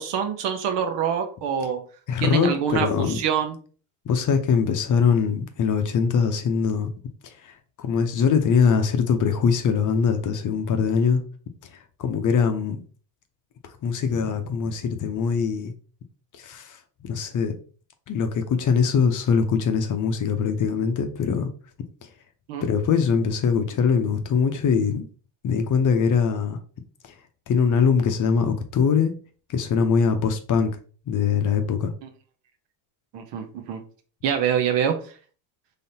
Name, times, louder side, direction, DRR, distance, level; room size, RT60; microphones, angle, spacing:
voice 1, 0.0-1.8 2.2-3.6 22.5-22.6 33.1-33.8 34.2-34.9, right 8 dB, 60° right, 1.0 m, -25 dB
voice 2, 2.1-3.2 4.1-6.9 7.2-11.2 12.0-12.8 13.8-15.7 16.3-17.6 18.1-21.5 22.6-25.1 25.4-26.6 27.0-27.1 27.5-29.1 29.5-30.8 31.1-31.9, left 6 dB, 40° left, 0.7 m, -22 dB
3.8 x 3.4 x 2.8 m
supercardioid pair, 80°, 48 cm